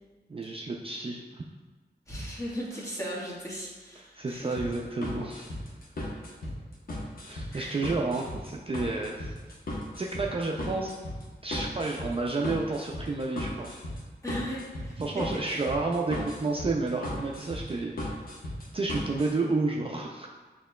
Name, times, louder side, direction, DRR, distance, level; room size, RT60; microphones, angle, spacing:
voice 1, 0.3-1.4 4.0-5.5 7.3-9.3 10.0-10.9 11.4-13.7 15.0-18.1 18.7-20.3, right 3 dB, 30° right, -1 dB, 0.4 m, -31 dB
voice 2, 2.1-4.6 7.5-7.8 14.2-15.1 15.3-15.4, equal, 15° left, -6 dB, 1.3 m, -37 dB
sound 1, 4.6-19.3, left 1 dB, 55° left, 1.0 m, -36 dB
6.5 x 2.9 x 2.3 m, 1.3 s
wide cardioid pair, 75°, 18 cm